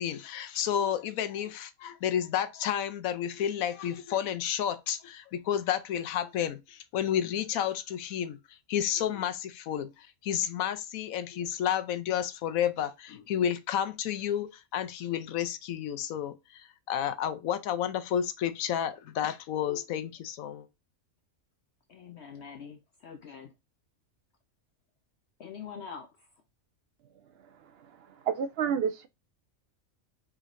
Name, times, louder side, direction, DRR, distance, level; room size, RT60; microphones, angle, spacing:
voice 1, 0.0-8.4 8.7-20.7, left 9 dB, 85° left, 1.1 m, -31 dB
voice 2, 21.9-23.5 25.4-26.3, left 6 dB, 60° left, 0.8 m, -44 dB
voice 3, 27.3-29.1, right 7 dB, 65° right, 0.6 m, -32 dB
5.0 x 3.7 x 2.6 m
omnidirectional pair, 1.4 m